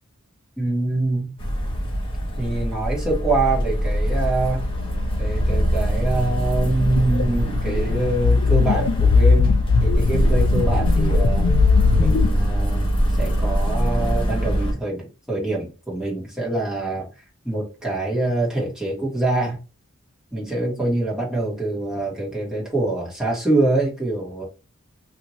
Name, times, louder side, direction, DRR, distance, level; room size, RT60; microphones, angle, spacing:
voice 1, 0.6-1.3 2.4-4.7 5.2-11.5 11.9-17.1 17.4-19.6 20.3-24.4, right 2 dB, 5° right, 1.4 m, -25 dB
sound 1, 1.4-14.7, equal, 25° left, 1.1 m, -23 dB
sound 2, 6.8-12.3, left 5 dB, 75° left, 0.4 m, -20 dB
2.7 x 2.7 x 3.0 m
head